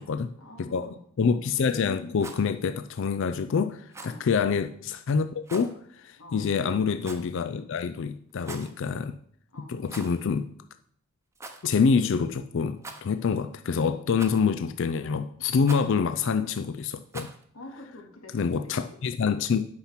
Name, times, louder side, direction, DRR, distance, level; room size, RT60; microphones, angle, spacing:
voice 1, 0.0-1.0 4.0-4.3 6.2-6.5 9.5-9.8 17.5-19.0, left 1 dB, 90° left, 2 dB, 2.3 m, -47 dB
voice 2, 0.6-9.2 9.7-10.5 11.6-17.3 18.3-19.6, left 5 dB, 60° left, 9 dB, 0.4 m, -26 dB
Rattle, 2.1-2.5 3.9-4.2 5.4-5.7 7.0-7.4 8.3-8.7 9.8-10.3 10.5-10.6 11.3-11.6 12.8-13.3 14.2-14.6 15.6-15.9 17.1-17.4, right 3 dB, 15° right, 0.8 m, -42 dB
8.8 x 5.8 x 5.8 m, 0.64 s
head